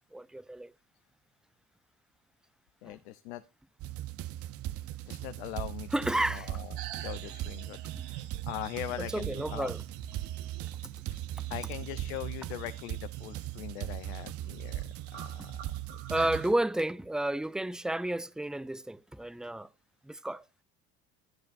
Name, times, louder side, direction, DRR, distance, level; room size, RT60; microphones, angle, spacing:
voice 1, 0.1-0.7 2.9-3.0 5.9-6.5 9.0-9.8 11.4-11.5 16.1-19.7 20.0-20.4, right 1 dB, ahead, 0.5 m, -31 dB
voice 2, 2.8-3.4 5.1-5.9 6.3-6.7 7.0-7.8 8.1-9.7 11.5-14.8 15.1-15.3, left 14 dB, 90° left, 0.8 m, -41 dB
sound 1, 3.8-16.5, right 14 dB, 50° right, 0.5 m, -39 dB
sound 2, 6.8-16.5, right 11 dB, 80° right, 1.4 m, -48 dB
11.5 x 10.5 x 2.6 m
supercardioid pair, 95°, 31 cm